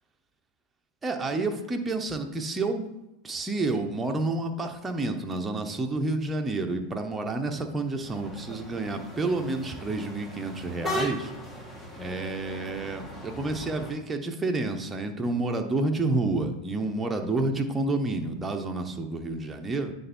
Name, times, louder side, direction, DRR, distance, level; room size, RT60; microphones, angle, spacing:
voice 1, 1.0-2.9 3.2-11.3 12.0-19.9, right 2 dB, 15° right, 4 dB, 1.0 m, -29 dB
sound 1, 8.0-13.9, equal, 15° left, 1.7 m, -38 dB
9.0 x 3.5 x 4.4 m, 0.92 s
hypercardioid pair, 95°, 0 cm